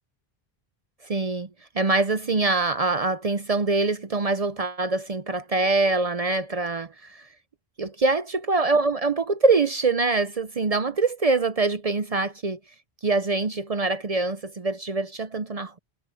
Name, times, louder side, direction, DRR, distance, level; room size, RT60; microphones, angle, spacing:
voice 1, 1.0-1.5 1.7-7.3 7.8-12.6 13.0-15.8, right 3 dB, 45° right, 0.7 m, -24 dB
omnidirectional pair, 1.0 m